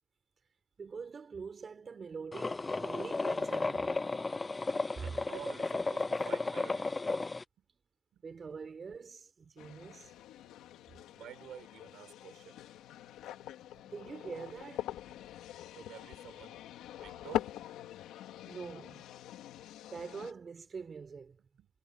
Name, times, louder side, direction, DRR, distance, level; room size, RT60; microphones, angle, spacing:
voice 1, 0.8-4.0 5.0-5.2 8.2-10.1 13.9-14.9 18.5-19.0 19.9-21.4, right 5 dB, 40° right, 4.6 m, -44 dB
sound 1, 2.3-7.4, left 3 dB, 25° left, 0.6 m, -34 dB
voice 2, 5.0-6.9 7.6-7.7 8.1-8.2 11.1-12.6 13.8-13.9 15.7-16.6 17.0-17.6 21.6-21.7, right 11 dB, 75° right, 5.6 m, -50 dB
sound 2, 9.6-20.3, left 12 dB, 90° left, 2.2 m, -43 dB
cardioid pair, 90°, 0 cm